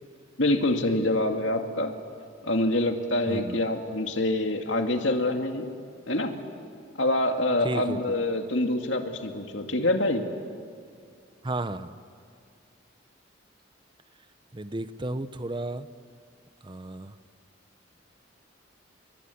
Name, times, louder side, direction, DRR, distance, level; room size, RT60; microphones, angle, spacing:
voice 1, 0.4-1.9 2.4-5.7 6.1-6.3 7.0-10.2, left 1 dB, 70° left, 4 dB, 2.4 m, -26 dB
voice 2, 3.3-3.6 7.6-8.2 11.4-12.0 14.5-15.9 16.6-17.1, right 2 dB, 25° right, 12 dB, 0.8 m, -33 dB
29.5 x 23.0 x 8.5 m, 2.3 s
head